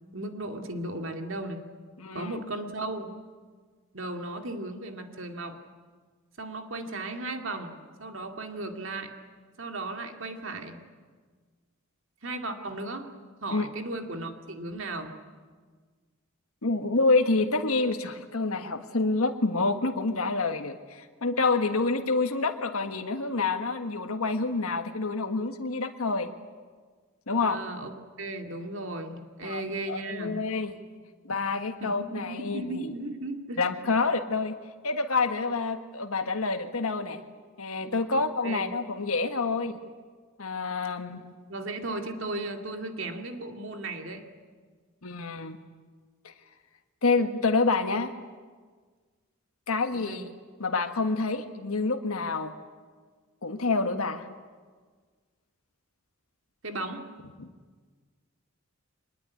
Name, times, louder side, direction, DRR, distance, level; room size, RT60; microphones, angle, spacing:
voice 1, 0.1-1.6 2.1-3.1 3.9-5.6 6.4-9.1 9.6-10.8 12.2-13.1 13.4-15.1 27.4-27.9 28.2-30.4 31.8-33.6 38.4-38.7 41.1-41.2 41.5-44.2 49.9-50.2 56.6-57.1, right 2 dB, 60° right, 5 dB, 2.5 m, -36 dB
voice 2, 2.0-2.4 13.5-13.7 16.6-26.3 27.3-27.6 29.4-29.6 29.9-30.7 31.2-32.9 33.6-34.6 34.8-37.2 37.6-39.8 40.4-41.2 45.0-45.6 46.2-46.3 47.0-48.1 49.7-50.3 50.6-52.5 53.4-54.3 57.4-57.5, left 3 dB, 80° left, 6 dB, 1.5 m, -27 dB
24.0 x 21.0 x 9.7 m, 1.5 s
head